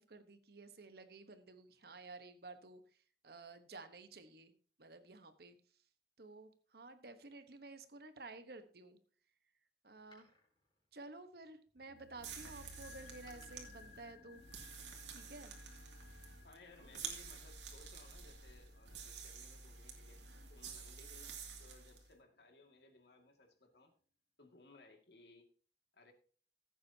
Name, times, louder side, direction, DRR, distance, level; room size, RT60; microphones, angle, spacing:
voice 1, 0.0-4.5 4.8-5.9 6.2-9.0 9.8-10.3 10.9-14.4 15.1-15.5 16.8-17.0, right 3 dB, 55° right, 10 dB, 1.1 m, -53 dB
Door, 9.9-11.7 12.7-15.5 16.5-17.6 17.9-18.0, left 3 dB, 25° left, 4.2 m, -71 dB
sound 1, 11.8-22.0 22.3-22.4, left 3 dB, 45° left, 1.2 m, -62 dB
sound 2, 12.2-22.1, right 5 dB, 80° right, 2.4 m, -50 dB
voice 2, 16.4-20.2 20.5-23.9 24.4-25.5 25.9-26.1, left 2 dB, 65° left, 4 dB, 2.1 m, -62 dB
15.5 x 8.5 x 2.8 m, 0.42 s
head